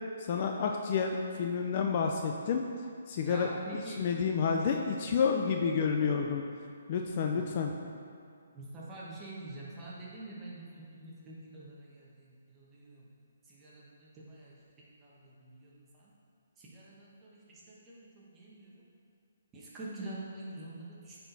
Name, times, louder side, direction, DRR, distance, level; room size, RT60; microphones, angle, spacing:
voice 1, 0.2-2.6 3.1-3.5 4.0-6.4 6.9-7.7, left 6 dB, 35° left, 2 dB, 0.4 m, -29 dB
voice 2, 3.2-4.1 7.3-7.4 8.5-13.1 13.4-14.6 15.0-16.1 16.6-18.8 19.5-21.2, right 2 dB, 15° right, -7 dB, 1.2 m, -46 dB
8.6 x 4.4 x 4.1 m, 2.4 s
hypercardioid pair, 165°, 0 cm